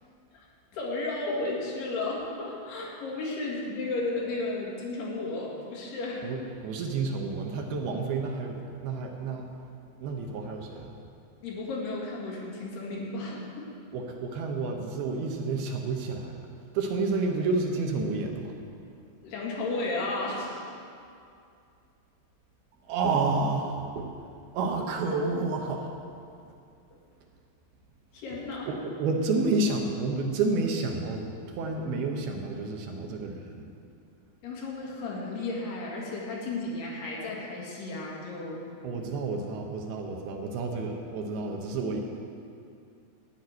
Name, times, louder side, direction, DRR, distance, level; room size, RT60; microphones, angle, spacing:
voice 1, 0.7-6.3 11.4-13.7 19.2-20.6 28.1-28.7 34.4-38.6, left 2 dB, 75° left, -3 dB, 4.1 m, -33 dB
voice 2, 6.2-9.5 10.0-11.0 13.9-16.4 16.7-18.5 22.8-24.1 24.5-25.9 28.7-33.7 38.8-42.0, right 3 dB, 75° right, 2 dB, 2.7 m, -30 dB
13.0 x 5.9 x 9.5 m, 2.5 s
omnidirectional pair, 4.8 m